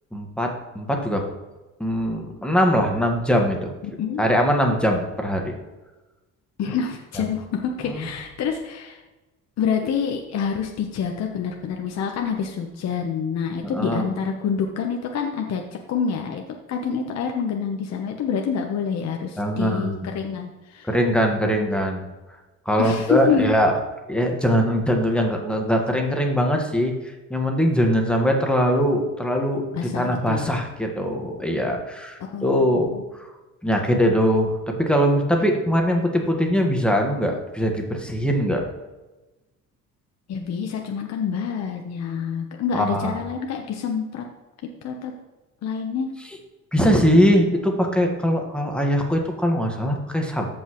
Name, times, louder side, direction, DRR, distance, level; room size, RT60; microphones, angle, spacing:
voice 1, 0.1-1.2 1.8-3.7 4.2-5.5 7.2-7.3 7.9-8.1 13.6-14.1 19.4-20.1 20.8-22.0 22.6-23.7 24.1-33.3 33.6-38.6 42.7-43.2 46.7-50.5, equal, 5° left, 1 dB, 1.6 m, -22 dB
voice 2, 6.6-9.0 9.6-15.6 15.9-16.4 16.7-20.9 21.5-21.7 22.8-23.6 29.7-30.5 32.2-33.0 40.3-44.2 44.8-45.1 45.6-46.1, left 6 dB, 55° left, 2 dB, 1.0 m, -27 dB
14.5 x 5.5 x 3.1 m, 1.1 s
cardioid pair, 110°, 31 cm